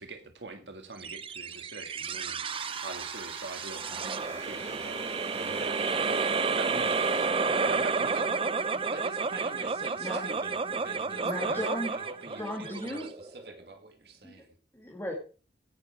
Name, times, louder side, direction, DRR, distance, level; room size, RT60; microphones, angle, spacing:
voice 1, 0.0-5.8 6.6-7.3 7.6-8.3, right 3 dB, 85° right, 5 dB, 1.9 m, -43 dB
sound 1, 1.0-13.6, right 4 dB, 30° right, 0.6 m, -31 dB
sound 2, 2.5-8.6, right 2 dB, 15° right, 5.0 m, -47 dB
voice 2, 8.9-11.6 11.9-14.5, right 3 dB, 65° right, 4 dB, 2.3 m, -45 dB
voice 3, 11.2-11.9 12.3-13.1 14.2-14.4 14.7-15.1, left 1 dB, 15° left, -2 dB, 2.4 m, -36 dB
17.0 x 7.2 x 4.7 m, 0.36 s
head